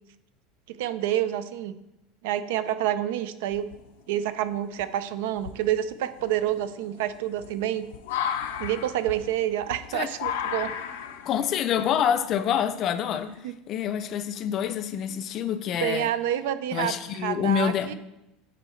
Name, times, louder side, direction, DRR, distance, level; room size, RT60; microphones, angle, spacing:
voice 1, 0.8-1.7 2.2-3.7 4.1-7.9 8.6-10.7 13.4-13.5 15.8-17.9, right 11 dB, 80° right, 13 dB, 0.4 m, -28 dB
sound 1, 3.5-4.1 4.8-4.9 5.4-13.4, left 9 dB, 90° left, 0.6 m, -35 dB
voice 2, 11.3-13.4 13.7-16.1 16.7-17.9, left 9 dB, 40° left, 11 dB, 0.4 m, -27 dB
9.1 x 4.3 x 3.1 m, 0.90 s
supercardioid pair, 135°, 0 cm